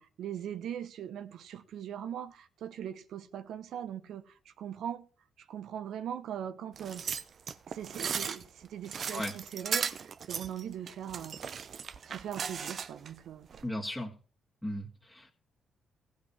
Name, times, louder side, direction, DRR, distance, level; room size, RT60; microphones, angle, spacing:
voice 1, 0.0-5.1 5.4-7.0 7.7-11.4 12.1-13.5, right 9 dB, 75° right, 1.0 m, -40 dB
sound 1, 6.8-13.1 13.5-13.7, right 6 dB, 55° right, 0.7 m, -37 dB
voice 2, 13.6-14.1 14.6-15.3, left 1 dB, 5° left, 2.2 m, -36 dB
15.0 x 5.2 x 7.3 m
supercardioid pair, 65°, 0 cm